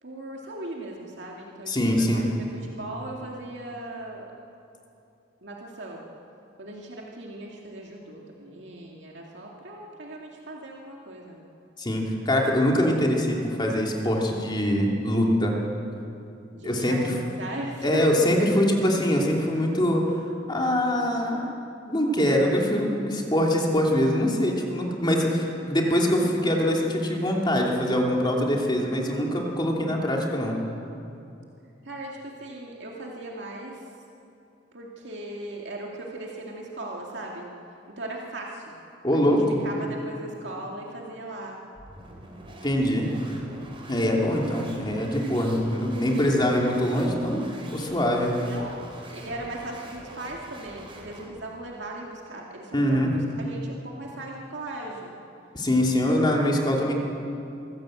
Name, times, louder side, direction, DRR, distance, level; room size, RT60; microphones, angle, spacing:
voice 1, 0.0-4.3 5.4-6.1 6.6-11.5 16.5-18.0 31.8-33.9 34.7-37.5 37.9-38.7 39.1-39.4 39.6-41.6 48.3-48.8 49.1-55.1, right 1 dB, 70° right, -2 dB, 2.3 m, -38 dB
voice 2, 1.7-2.3 11.8-15.5 16.6-17.1 17.8-20.1 20.5-21.5 21.9-30.6 39.0-39.6 42.6-43.1 43.9-47.4 47.7-48.4 52.7-53.2 55.5-56.9, equal, 25° left, -1 dB, 2.8 m, -23 dB
sound 1, 41.7-51.4, right 1 dB, 30° right, 3.7 m, -45 dB
25.0 x 15.5 x 7.8 m, 2.8 s
head